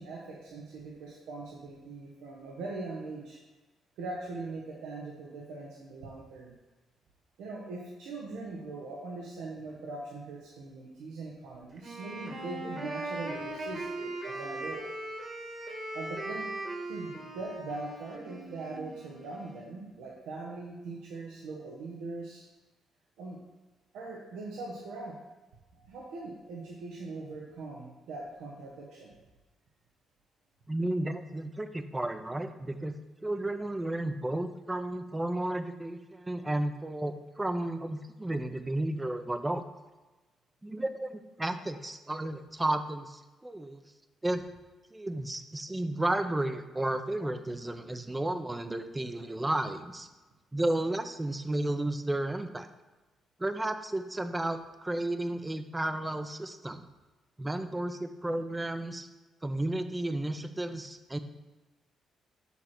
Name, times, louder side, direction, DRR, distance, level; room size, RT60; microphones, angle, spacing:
voice 1, 0.0-3.4 4.0-6.6 7.4-14.8 15.9-16.5 16.9-22.4 23.2-23.4 23.9-25.2 25.7-29.1, right 3 dB, 90° right, -3 dB, 1.0 m, -41 dB
Wind instrument woodwind instrument, 11.8-19.7, right 1 dB, 45° right, 1.5 m, -39 dB
voice 2, 30.7-33.0 33.2-39.6 40.6-43.8 44.2-44.4 44.9-50.1 50.5-52.7 53.4-56.8 57.4-59.1 59.4-61.2, right 1 dB, 15° right, 9 dB, 0.5 m, -33 dB
6.9 x 3.2 x 5.9 m, 1.2 s
cardioid pair, 90°, 0 cm